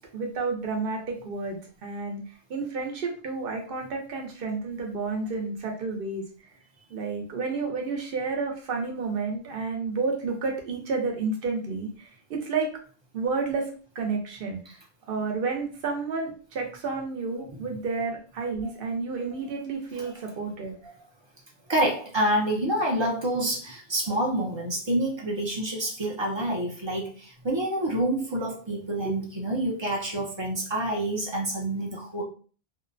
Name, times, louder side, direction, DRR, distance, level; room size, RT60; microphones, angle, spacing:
voice 1, 0.1-2.2 2.5-6.2 6.9-12.7 13.1-14.8 15.1-20.7 29.0-29.2, right 4 dB, 60° right, 2 dB, 0.8 m, -31 dB
voice 2, 21.7-32.2, right 1 dB, 35° right, -2 dB, 0.5 m, -27 dB
2.6 x 2.0 x 2.5 m, 0.40 s
omnidirectional pair, 1.1 m